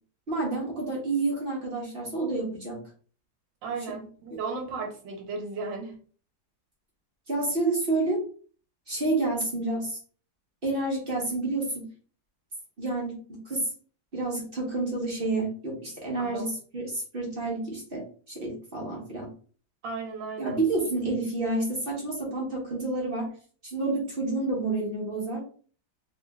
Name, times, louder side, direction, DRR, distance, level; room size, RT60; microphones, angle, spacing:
voice 1, 0.3-2.8 4.3-4.4 7.3-8.2 8.9-10.0 10.6-11.9 12.8-13.7 14.1-19.3 20.4-23.3 23.6-25.4, right 2 dB, 35° right, -3 dB, 1.1 m, -29 dB
voice 2, 3.6-5.9 16.2-16.5 19.8-20.6, right 4 dB, 80° right, 2 dB, 1.6 m, -35 dB
3.4 x 2.5 x 3.4 m, 0.43 s
omnidirectional pair, 2.0 m